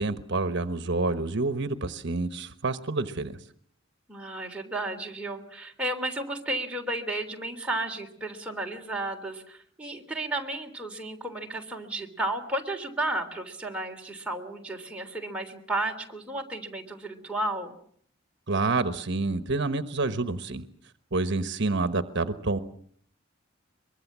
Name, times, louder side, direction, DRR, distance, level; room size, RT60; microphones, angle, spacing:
voice 1, 0.0-3.4 18.5-20.6 21.1-22.6, right 3 dB, 60° right, 10 dB, 1.2 m, -28 dB
voice 2, 4.1-17.7, right 2 dB, 5° right, 0 dB, 3.4 m, -33 dB
23.5 x 22.5 x 7.4 m, 0.62 s
head